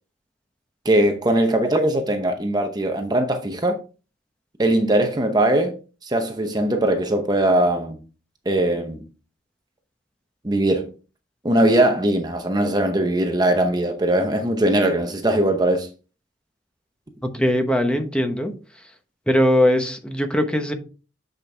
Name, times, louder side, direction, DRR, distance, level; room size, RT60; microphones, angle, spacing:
voice 1, 0.8-3.8 4.6-5.7 6.0-8.0 8.5-9.0 10.4-10.9 11.4-15.9, right 1 dB, 20° right, 0.8 m, -20 dB
voice 2, 17.3-18.8 19.3-20.7, equal, 5° left, 1.0 m, -20 dB
8.5 x 5.3 x 3.4 m
head